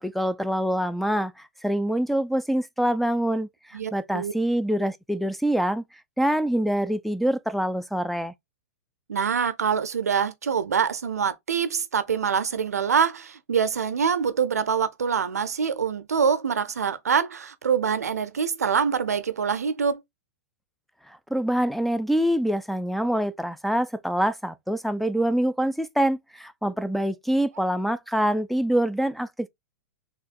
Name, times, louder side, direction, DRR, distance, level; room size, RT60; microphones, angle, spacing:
voice 1, 0.0-5.8 6.2-8.3 21.1-29.5, right 1 dB, ahead, 0.3 m, -25 dB
voice 2, 3.7-4.3 9.1-20.0, right 6 dB, 85° right, 0.6 m, -25 dB
3.5 x 3.0 x 4.1 m
hypercardioid pair, 115°, 8 cm